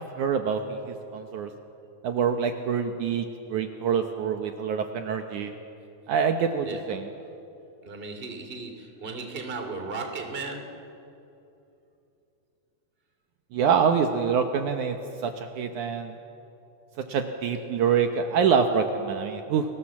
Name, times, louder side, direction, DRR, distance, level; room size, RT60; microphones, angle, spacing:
voice 1, 0.0-1.5 2.0-5.5 6.1-7.0 13.5-15.0 15.2-16.2 17.1-19.7, right 6 dB, 70° right, 6 dB, 2.3 m, -26 dB
voice 2, 6.6-7.2 7.8-11.0, right 3 dB, 20° right, 5 dB, 2.3 m, -36 dB
30.0 x 21.5 x 7.4 m, 2.8 s
omnidirectional pair, 4.0 m